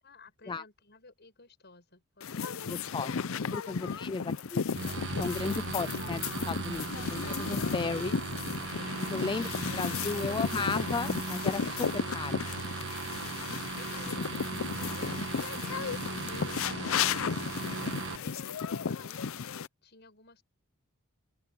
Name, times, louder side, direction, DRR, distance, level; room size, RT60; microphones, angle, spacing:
voice 1, 0.0-2.9 3.4-3.6 3.9-4.2 9.5-10.2 13.1-19.4 19.8-20.4, left 3 dB, 55° left, 7.5 m, -55 dB
sound 1, 2.2-19.7, left 6 dB, 70° left, 0.6 m, -34 dB
voice 2, 2.7-3.1 3.5-4.6 5.2-8.1 9.1-12.5, left 4 dB, 20° left, 0.3 m, -35 dB
sound 2, 4.8-18.2, right 4 dB, 60° right, 1.5 m, -37 dB
open air
head